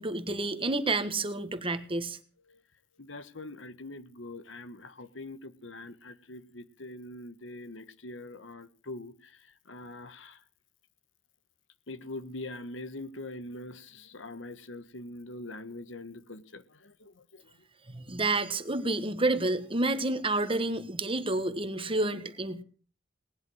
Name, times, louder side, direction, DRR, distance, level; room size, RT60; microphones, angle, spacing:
voice 1, 0.0-2.2 17.9-22.6, right 2 dB, 30° right, 1.5 m, -29 dB
voice 2, 3.0-10.4 11.9-17.5 18.8-18.9, left 2 dB, 85° left, 1.4 m, -43 dB
19.0 x 11.0 x 6.3 m
head